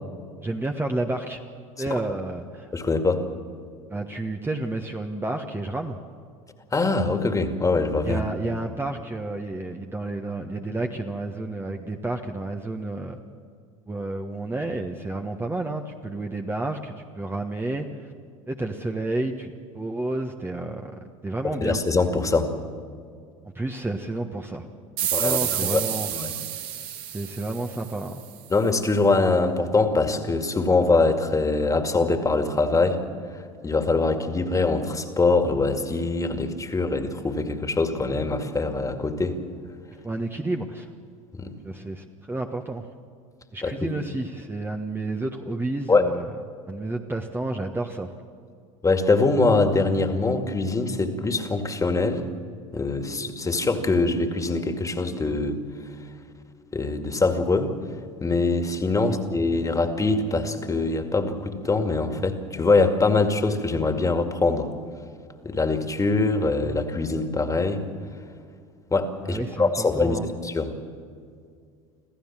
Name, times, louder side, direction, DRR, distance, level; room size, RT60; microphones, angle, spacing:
voice 1, 0.4-1.4 1.8-2.7 3.9-6.0 8.0-13.2 13.9-18.1 18.5-20.9 21.2-21.8 23.5-24.7 25.0-26.1 27.1-28.2 40.0-40.9 41.4-42.8 43.5-46.3 46.7-48.1 59.1-59.2 69.2-70.3, right 2 dB, 15° right, 3 dB, 1.3 m, -30 dB
voice 2, 2.7-3.2 6.7-8.2 21.6-22.5 25.1-25.8 26.1-26.3 28.5-33.0 33.6-39.4 41.3-41.5 43.6-43.9 45.9-46.1 48.8-52.2 52.7-55.6 56.7-57.7 58.2-64.7 65.4-67.8 68.9-70.7, left 3 dB, 20° left, 6 dB, 2.2 m, -23 dB
sound 1, 25.0-28.3, right 10 dB, 60° right, 1.9 m, -29 dB
26.5 x 15.0 x 7.4 m, 2.2 s
hypercardioid pair, 80°, 17 cm